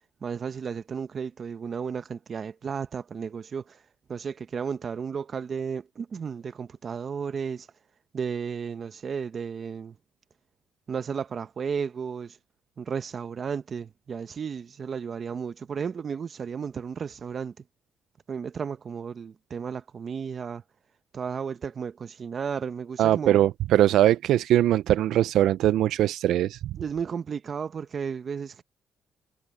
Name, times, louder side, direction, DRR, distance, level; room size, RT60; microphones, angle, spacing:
voice 1, 0.2-3.8 4.1-7.7 8.1-10.0 10.9-12.4 12.8-17.6 18.3-20.6 21.1-23.4 26.8-28.6, right 6 dB, 45° right, 0.9 m, -33 dB
voice 2, 23.0-26.6, right 12 dB, 80° right, 0.4 m, -21 dB
cardioid pair, 90°, 0 cm